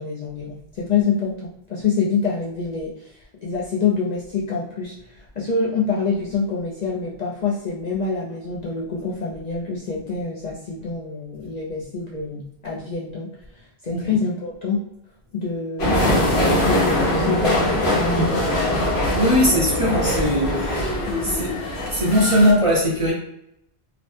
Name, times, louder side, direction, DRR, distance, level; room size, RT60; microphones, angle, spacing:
voice 1, 0.0-2.9 3.4-4.9 5.4-13.3 13.8-14.8 15.3-18.6 19.5-19.6 20.1-20.3 20.5-20.7 21.1-21.4, left 5 dB, 50° left, -5 dB, 0.5 m, -26 dB
sound 1, 15.8-22.5, left 1 dB, 75° left, 1.1 m, -22 dB
voice 2, 19.1-20.9 21.2-21.6 21.9-23.1, equal, 35° right, -4 dB, 0.6 m, -20 dB
2.9 x 2.0 x 3.2 m, 0.77 s
omnidirectional pair, 1.1 m